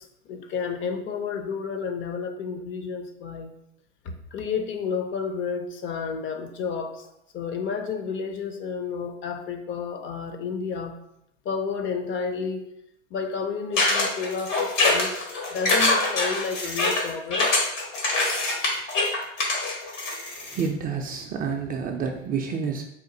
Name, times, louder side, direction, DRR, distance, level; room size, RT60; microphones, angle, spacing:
voice 1, 0.0-3.5 4.0-7.1 7.3-10.9 11.5-12.7 13.1-15.2 15.5-17.5 18.7-18.9, left 5 dB, 35° left, 7 dB, 0.5 m, -31 dB
sound 1, 13.8-20.7, left 2 dB, 85° left, 1.5 m, -24 dB
voice 2, 20.5-22.8, right 6 dB, 25° right, 3 dB, 0.4 m, -28 dB
4.2 x 2.5 x 3.7 m, 0.78 s
hypercardioid pair, 100°, 37 cm